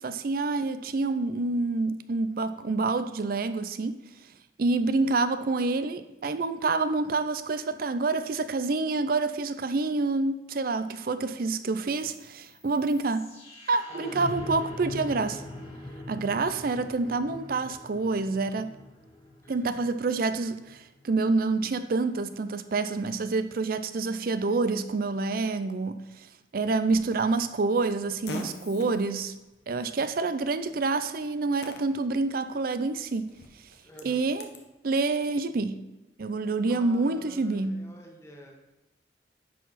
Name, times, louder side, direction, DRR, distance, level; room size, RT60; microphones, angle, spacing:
voice 1, 0.0-4.0 4.6-13.3 13.7-15.4 16.1-18.7 19.5-26.3 26.5-29.3 29.7-33.3 34.0-34.5 34.8-35.8 36.2-37.9, right 3 dB, 55° right, 11 dB, 0.5 m, -27 dB
sound 1, 11.9-21.9, left 1 dB, 35° left, 1.7 m, -42 dB
voice 2, 13.9-14.2 19.4-19.6 33.8-34.3 36.7-38.6, right 1 dB, 15° left, 0 dB, 1.3 m, -48 dB
Fart, 26.9-34.7, left 2 dB, 70° left, 0.9 m, -46 dB
10.0 x 4.7 x 4.1 m, 1.0 s
head